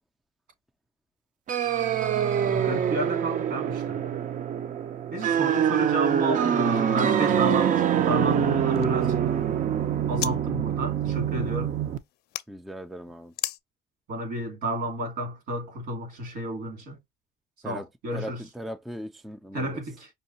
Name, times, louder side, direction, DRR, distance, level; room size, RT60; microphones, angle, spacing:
sound 1, 1.5-12.0, right 9 dB, 50° right, 0.5 m, -25 dB
voice 1, 2.5-4.1 5.1-9.2 10.1-11.7 14.1-17.0 17.6-18.4 19.5-20.1, right 1 dB, 70° right, 2.7 m, -31 dB
sound 2, 8.2-10.4 10.7-12.5 13.3-13.6, left 14 dB, 70° left, 0.5 m, -39 dB
voice 2, 12.5-13.3 17.6-17.9 18.1-19.8, equal, ahead, 0.3 m, -39 dB
5.4 x 2.3 x 2.7 m
cardioid pair, 110°, 17 cm